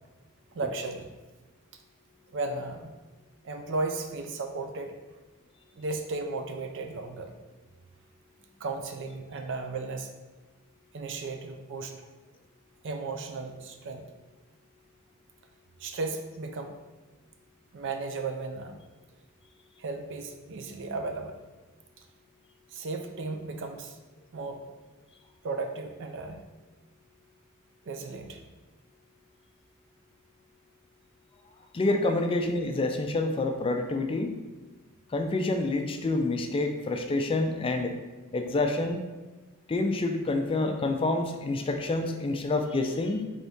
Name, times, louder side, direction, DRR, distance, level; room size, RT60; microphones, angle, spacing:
voice 1, 0.5-1.1 2.3-2.9 3.4-4.9 5.7-7.3 8.6-10.1 10.9-11.9 12.8-14.0 15.8-16.7 17.7-18.8 19.8-21.4 22.7-24.0 24.3-24.6 25.4-26.5 27.8-28.4 32.1-32.2, right 3 dB, 55° right, 5 dB, 0.5 m, -35 dB
voice 2, 31.7-34.3 35.1-37.9 38.3-39.0 39.7-43.2, left 2 dB, 25° left, 5 dB, 0.3 m, -27 dB
4.1 x 3.5 x 3.5 m, 1.2 s
head